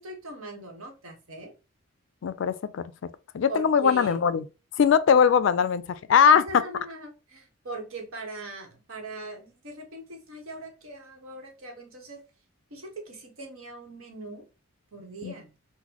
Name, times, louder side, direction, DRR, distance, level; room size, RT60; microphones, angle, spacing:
voice 1, 0.0-1.5 3.5-4.2 6.3-12.2 12.7-14.5 14.9-15.6, right 2 dB, 75° right, 1.1 m, -40 dB
voice 2, 2.2-2.9 3.3-4.4 4.8-6.4 15.2-15.3, left 7 dB, 60° left, 0.3 m, -21 dB
3.8 x 2.1 x 2.9 m
head